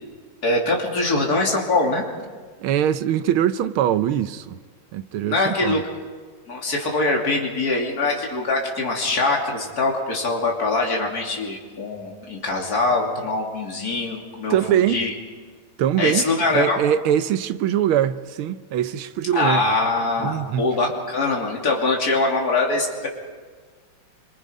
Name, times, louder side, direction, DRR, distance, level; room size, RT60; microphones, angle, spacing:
voice 1, 0.4-2.0 5.3-5.8 6.5-15.1 16.0-16.8 19.3-23.1, left 3 dB, 45° left, 3.4 m, -23 dB
voice 2, 2.6-4.6 4.9-5.8 14.5-15.0 15.8-16.2 16.5-19.6 20.2-20.6, right 10 dB, 85° right, 1.7 m, -22 dB
26.5 x 24.5 x 5.2 m
omnidirectional pair, 2.3 m